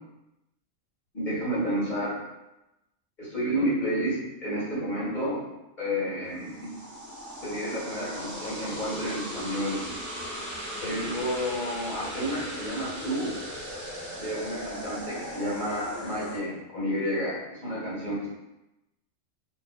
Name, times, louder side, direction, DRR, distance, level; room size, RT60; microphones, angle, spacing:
voice 1, 1.1-2.2 3.2-5.4 5.8-6.7 7.4-9.9 10.8-13.3 14.2-18.4, equal, 35° left, -10 dB, 1.7 m, -30 dB
sound 1, 6.3-16.4, equal, 25° right, 0.4 m, -38 dB
4.5 x 2.7 x 2.4 m, 0.96 s
omnidirectional pair, 1.5 m